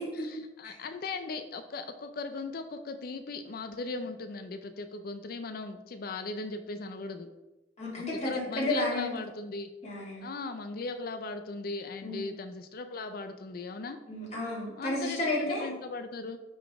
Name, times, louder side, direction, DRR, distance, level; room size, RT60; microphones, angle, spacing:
voice 1, 0.0-7.3 8.2-9.7 10.2-14.0 14.8-16.4, left 3 dB, 55° left, 8 dB, 0.5 m, -38 dB
voice 2, 7.8-9.1 9.8-10.3 12.0-12.3 14.1-15.7, left 1 dB, 40° left, -5 dB, 2.4 m, -32 dB
9.7 x 3.9 x 3.5 m, 1.1 s
head